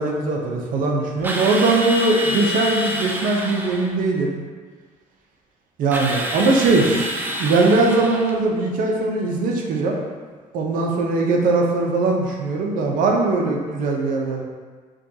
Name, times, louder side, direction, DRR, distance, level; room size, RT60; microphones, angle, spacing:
voice 1, 0.0-4.4 5.8-7.1 7.4-10.0 10.5-14.4, right 3 dB, 70° right, 0 dB, 0.6 m, -20 dB
Drill, 1.2-3.9 5.9-8.4, equal, 15° right, 0.4 m, -28 dB
4.9 x 2.3 x 2.8 m, 1.5 s
cardioid pair, 115°, 14 cm